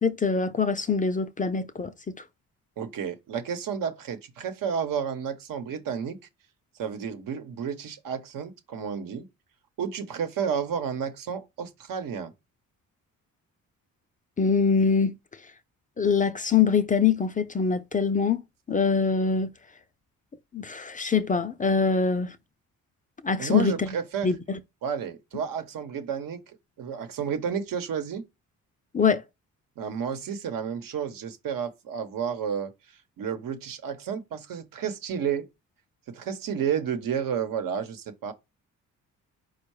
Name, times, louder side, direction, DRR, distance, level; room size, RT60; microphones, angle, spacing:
voice 1, 0.0-1.9 14.4-15.1 16.0-18.4 18.7-19.5 20.5-22.4 23.2-23.9 24.2-24.6 28.9-29.2, left 5 dB, 25° left, 0.5 m, -24 dB
voice 2, 2.8-6.2 6.8-9.3 9.8-12.3 23.4-24.3 24.8-28.2 29.8-32.7 33.2-35.5 36.1-38.3, right 7 dB, 80° right, 1.1 m, -31 dB
4.5 x 2.3 x 4.7 m
cardioid pair, 95°, 34 cm